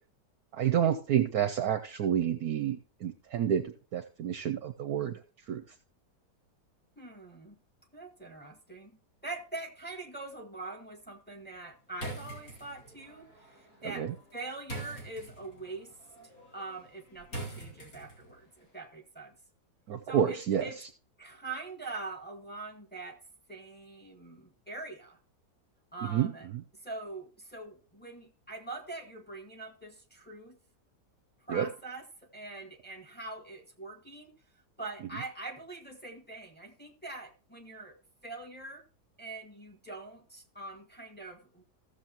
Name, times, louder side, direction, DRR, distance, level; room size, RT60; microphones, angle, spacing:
voice 1, 0.5-5.2 5.5-5.6 14.0-14.1 19.9-20.9 26.0-26.3 31.5-31.7, right 9 dB, 65° right, 10 dB, 1.0 m, -29 dB
voice 2, 7.0-7.6 7.9-9.0 9.2-14.1 14.3-15.9 16.5-19.3 20.1-20.8 21.2-23.2 23.5-25.2 25.9-26.5 26.8-30.6 31.4-34.3 34.8-38.0 38.2-38.8 39.2-41.6, right 3 dB, 5° left, 3 dB, 1.3 m, -43 dB
sound 1, 11.9-18.4, right 1 dB, 50° left, 3.2 m, -45 dB
15.0 x 6.9 x 2.9 m, 0.35 s
omnidirectional pair, 1.9 m